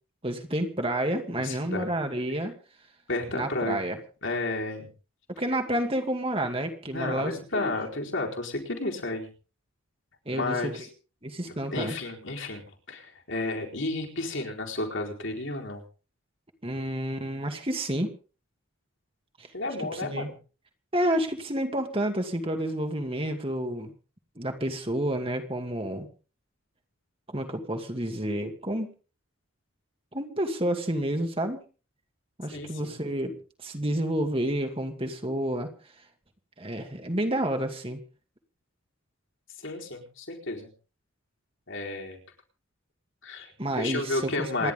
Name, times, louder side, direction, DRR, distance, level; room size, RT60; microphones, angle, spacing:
voice 1, 0.2-2.5 3.3-4.0 5.3-7.7 10.3-10.7 11.2-12.0 16.6-18.1 19.4-19.5 19.9-20.3 20.9-23.9 24.4-26.1 27.3-28.9 30.1-31.6 32.4-33.3 33.6-35.7 36.6-38.0 43.6-44.7, right 1 dB, 25° right, 4 dB, 2.4 m, -29 dB
voice 2, 1.4-1.9 3.1-3.8 4.2-4.9 6.8-9.3 10.3-10.9 11.5-15.8 19.5-20.3 32.5-33.0 39.6-40.7 41.7-42.2 43.2-44.7, left 2 dB, 60° left, 0 dB, 4.5 m, -32 dB
28.0 x 11.5 x 3.8 m, 0.37 s
head